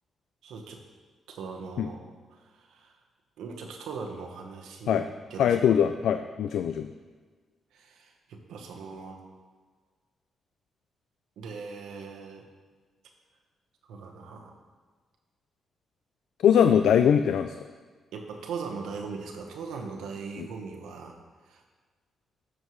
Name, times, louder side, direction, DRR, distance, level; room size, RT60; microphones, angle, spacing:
voice 1, 0.4-0.8 1.3-2.9 3.4-5.6 7.7-9.2 11.4-12.4 13.9-14.5 18.1-21.2 21.4-21.6, right 5 dB, 90° right, 2 dB, 1.1 m, -40 dB
voice 2, 5.4-6.9 16.4-17.7 20.4-20.5, left 8 dB, 80° left, 8 dB, 0.3 m, -22 dB
12.5 x 6.5 x 3.1 m, 1.5 s
cardioid pair, 90°, 0 cm